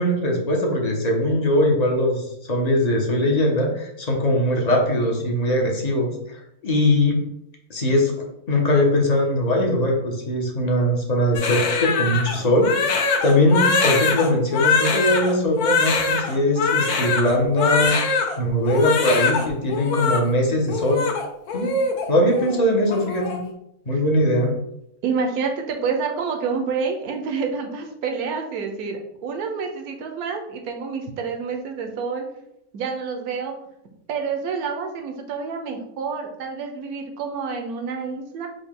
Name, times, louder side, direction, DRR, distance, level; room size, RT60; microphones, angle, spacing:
voice 1, 0.0-7.2 7.7-8.1 8.5-21.0 21.5-21.7 22.1-23.4 23.9-24.5, left 1 dB, 40° left, 0 dB, 0.6 m, -21 dB
Crying sobbing, 11.3-18.3 18.7-19.4 19.7-20.2 20.7-22.1 22.3-22.6 22.9-23.4, left 4 dB, 75° left, 1.2 m, -23 dB
voice 2, 25.0-32.3 32.7-33.5 34.1-38.5, right 5 dB, 75° right, 3 dB, 1.2 m, -28 dB
5.0 x 2.2 x 3.6 m, 0.78 s
omnidirectional pair, 1.6 m